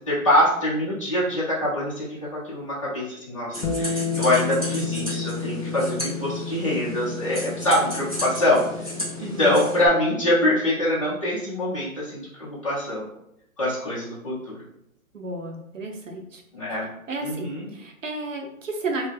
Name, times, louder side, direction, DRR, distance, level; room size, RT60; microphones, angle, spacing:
voice 1, 0.0-8.9 9.2-13.1 13.6-14.6 16.5-16.9 17.2-17.7, left 1 dB, 25° left, -10 dB, 0.7 m, -24 dB
sound 1, 3.5-9.8, equal, 25° right, 0.5 m, -34 dB
Bass guitar, 3.6-9.9, left 5 dB, 60° left, 0.6 m, -32 dB
voice 2, 9.2-9.6 15.1-16.4 17.1-19.1, right 2 dB, 65° right, 3 dB, 0.7 m, -32 dB
3.2 x 2.2 x 3.3 m, 0.79 s
hypercardioid pair, 175°, 43 cm